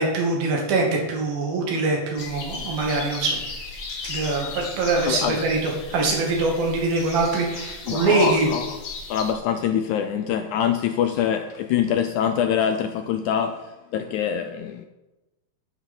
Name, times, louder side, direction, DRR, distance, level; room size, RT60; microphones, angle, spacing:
voice 1, 0.0-3.4 4.0-8.5, right 3 dB, 85° right, 4.1 m, -23 dB
sound 1, 2.2-9.3, left 4 dB, 60° left, 3.4 m, -36 dB
voice 2, 5.1-5.4 7.9-8.8 9.1-14.9, left 9 dB, 80° left, 1.8 m, -24 dB
10.5 x 8.8 x 5.5 m
omnidirectional pair, 4.1 m